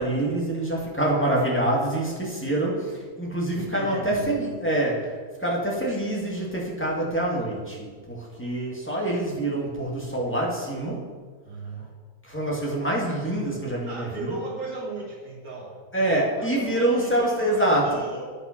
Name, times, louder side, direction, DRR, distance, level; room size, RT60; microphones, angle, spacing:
voice 1, 0.0-11.0 12.2-14.4 15.9-17.8, right 1 dB, 10° left, -4 dB, 2.1 m, -26 dB
voice 2, 3.5-4.4 11.4-11.9 13.9-15.8 16.1-18.3, right 2 dB, 80° right, -5 dB, 2.5 m, -35 dB
11.5 x 5.9 x 5.9 m, 1.6 s
omnidirectional pair, 1.5 m